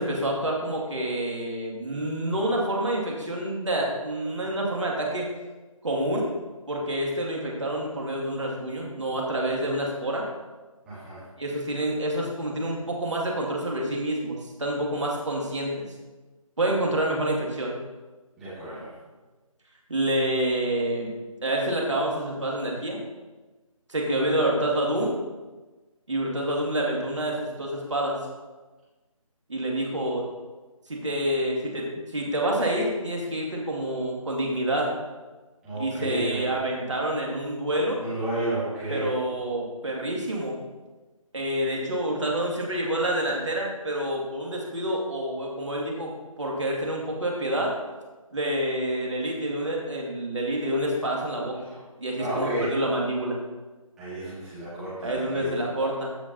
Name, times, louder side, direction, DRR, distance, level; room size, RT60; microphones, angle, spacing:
voice 1, 0.0-5.3 5.8-6.3 6.7-10.3 11.4-15.8 16.6-17.8 19.9-21.1 21.4-23.0 23.9-25.2 26.1-28.2 29.5-30.2 30.9-35.0 35.8-38.0 38.9-40.6 41.3-46.1 46.4-47.7 48.3-51.6 52.0-53.4 55.0-56.1, right 1 dB, 55° right, -2 dB, 2.2 m, -27 dB
voice 2, 10.8-11.2 18.4-18.9 35.6-36.6 38.0-39.1 51.5-51.6 52.2-52.8 54.0-55.6, right 1 dB, ahead, -17 dB, 2.0 m, -32 dB
15.0 x 5.1 x 2.8 m, 1.2 s
figure-of-eight pair, 160°, 18 cm